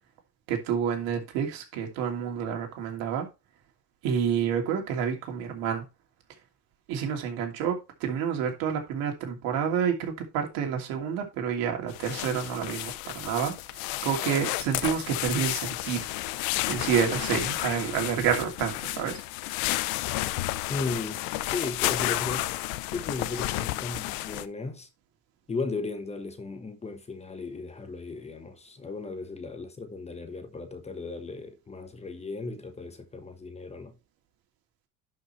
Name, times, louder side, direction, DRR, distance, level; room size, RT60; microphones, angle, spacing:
voice 1, 0.5-3.3 4.0-5.8 6.9-16.1 16.7-19.2, right 8 dB, 75° right, 2.8 m, -29 dB
sound 1, 11.9-24.5, left 17 dB, 85° left, 0.7 m, -31 dB
voice 2, 20.7-21.2 21.5-22.5 22.9-24.9 25.5-33.9, left 3 dB, 20° left, 1.1 m, -36 dB
11.5 x 5.5 x 3.1 m
cardioid pair, 125°, 35 cm